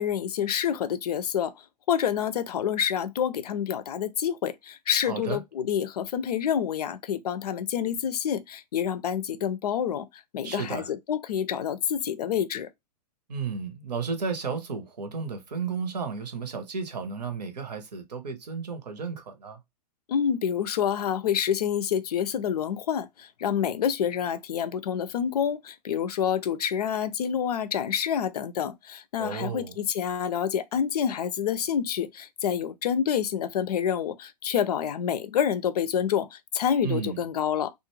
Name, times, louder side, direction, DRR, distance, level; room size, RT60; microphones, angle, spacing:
voice 1, 0.0-12.7 20.1-37.7, left 8 dB, 65° left, 0.5 m, -28 dB
voice 2, 5.1-5.4 10.4-10.9 13.3-19.6 29.2-29.8 36.8-37.2, right 5 dB, 75° right, 0.8 m, -33 dB
2.5 x 2.2 x 3.0 m
figure-of-eight pair, 110°, 21 cm